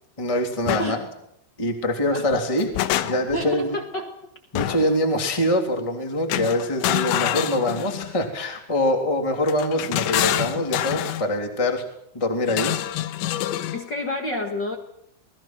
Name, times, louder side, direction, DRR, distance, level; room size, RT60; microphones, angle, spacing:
voice 1, 0.2-1.1 1.6-2.7 3.0-3.8 4.5-11.8 12.1-12.7, left 1 dB, 10° left, 3 dB, 2.4 m, -24 dB
sound 1, 0.7-0.9 2.3-3.4 4.6-5.0 6.3-8.1 9.5-11.3 12.5-13.8, left 13 dB, 85° left, 3.4 m, -26 dB
voice 2, 3.3-4.1 13.7-14.8, left 1 dB, 60° left, 3 dB, 1.1 m, -29 dB
28.0 x 20.5 x 6.1 m, 0.77 s
omnidirectional pair, 5.2 m